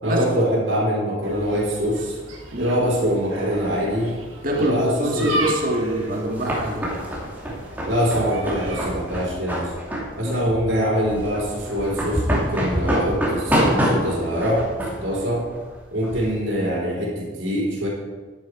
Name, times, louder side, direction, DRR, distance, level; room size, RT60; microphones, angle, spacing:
voice 1, 0.0-2.2 2.6-4.1 4.5-5.5 7.9-9.7 10.2-14.7 15.0-15.5 15.9-17.9, equal, 60° right, -5 dB, 4.1 m, -23 dB
sound 1, 1.2-8.9, right 1 dB, 75° right, 3.1 m, -35 dB
voice 2, 4.4-6.9 10.2-10.5, right 1 dB, 45° right, 0 dB, 1.9 m, -25 dB
sound 2, 5.9-16.3, equal, 10° right, 2.7 m, -26 dB
13.0 x 9.8 x 4.9 m, 1.4 s
head